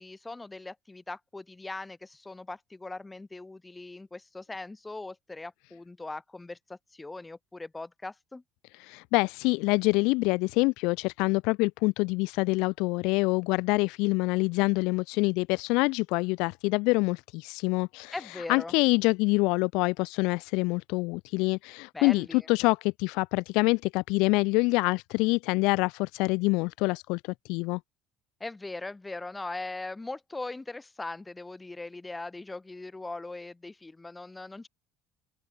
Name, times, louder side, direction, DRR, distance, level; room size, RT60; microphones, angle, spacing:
voice 1, 0.0-8.4 18.1-18.7 21.9-22.5 28.4-34.7, left 2 dB, 15° left, 4.2 m, -40 dB
voice 2, 8.8-18.1 18.5-27.2 27.5-27.8, left 26 dB, 75° left, 0.9 m, -26 dB
open air
hypercardioid pair, 70°, 0 cm